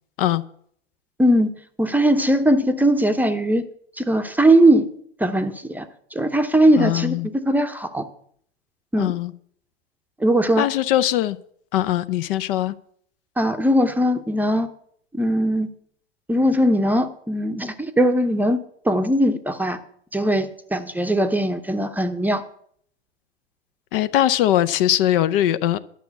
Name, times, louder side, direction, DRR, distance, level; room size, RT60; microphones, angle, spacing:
voice 1, 1.2-1.5 1.8-3.7 4.0-4.9 5.2-5.9 6.1-8.0 8.9-9.1 10.2-10.7 13.4-14.7 15.1-15.7 16.3-18.6 18.8-19.8 20.1-22.4, right 1 dB, 5° right, 0.7 m, -19 dB
voice 2, 6.8-7.3 9.0-9.3 10.6-11.4 11.7-12.7 23.9-25.8, left 12 dB, 55° left, 0.7 m, -21 dB
11.0 x 6.2 x 8.2 m
hypercardioid pair, 105°, 34 cm